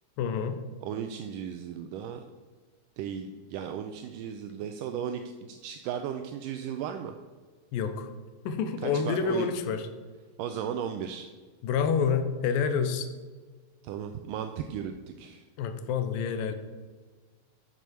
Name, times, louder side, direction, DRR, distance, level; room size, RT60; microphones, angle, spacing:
voice 1, 0.2-0.6 7.7-8.1 8.5-9.9 11.6-13.1 15.6-16.5, left 6 dB, 85° left, 8 dB, 2.4 m, -28 dB
voice 2, 0.8-2.2 3.0-7.2 8.8-9.5 10.4-11.3 13.8-15.4, right 8 dB, 80° right, 6 dB, 2.1 m, -36 dB
7.5 x 6.9 x 6.2 m, 1.4 s
omnidirectional pair, 4.0 m